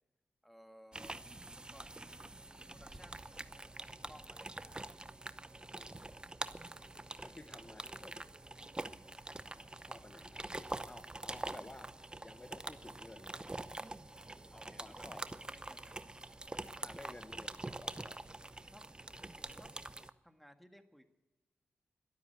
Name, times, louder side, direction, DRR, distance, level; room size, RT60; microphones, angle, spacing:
voice 1, 0.4-1.2 1.7-1.9 2.8-3.1 3.8-4.8 14.5-17.1 18.7-18.8 19.4-19.7 20.2-21.0, equal, ahead, 7 dB, 1.7 m, -59 dB
sound 1, 0.9-20.1, right 2 dB, 20° right, 0.8 m, -45 dB
voice 2, 5.7-6.2 7.2-8.3 9.4-11.9 12.2-13.4 14.5-15.4 16.8-18.2, left 2 dB, 25° left, 7 dB, 1.0 m, -55 dB
13.0 x 12.5 x 7.8 m, 1.0 s
cardioid pair, 55°, 4 cm